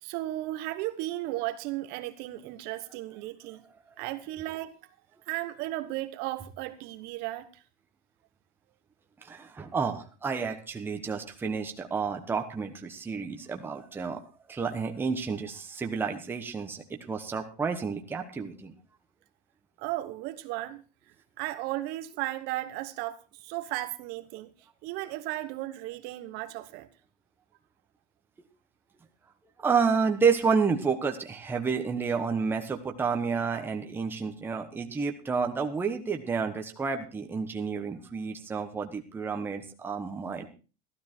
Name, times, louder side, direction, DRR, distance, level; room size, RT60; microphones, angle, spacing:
voice 1, 0.0-3.6 4.0-4.7 5.3-7.5 19.8-20.8 21.4-24.5 24.8-26.9, right 16 dB, 50° right, 11 dB, 1.2 m, -35 dB
voice 2, 9.2-14.2 14.5-18.7 29.6-40.5, right 5 dB, 10° right, 4 dB, 1.2 m, -30 dB
14.5 x 12.5 x 4.4 m, 0.34 s
cardioid pair, 175°, 21 cm